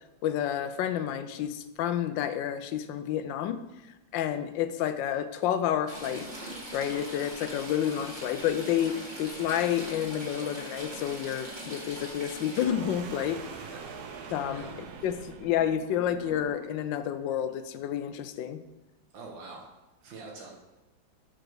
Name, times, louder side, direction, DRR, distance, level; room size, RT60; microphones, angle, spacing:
voice 1, 0.2-3.6 4.1-6.3 6.7-13.4 14.3-18.6, left 10 dB, 80° left, 11 dB, 1.3 m, -30 dB
Stream / Trickle dribble, 5.9-12.7, right 1 dB, 25° right, 1.5 m, -41 dB
sound 1, 12.6-16.9, right 6 dB, 65° right, 1.1 m, -43 dB
voice 2, 14.3-14.7 19.1-19.6 20.0-20.5, right 3 dB, 85° right, -1 dB, 1.8 m, -45 dB
7.4 x 4.9 x 4.6 m, 1.1 s
omnidirectional pair, 2.0 m